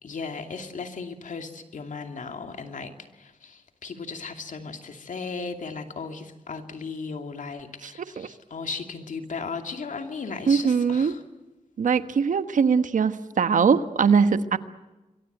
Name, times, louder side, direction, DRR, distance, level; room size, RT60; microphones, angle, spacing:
voice 1, 0.0-11.2, left 4 dB, 75° left, 6 dB, 2.5 m, -36 dB
voice 2, 10.5-11.1 11.8-14.6, right 6 dB, 75° right, 11 dB, 1.2 m, -21 dB
27.5 x 22.5 x 8.0 m, 1.1 s
cardioid pair, 65°, 13 cm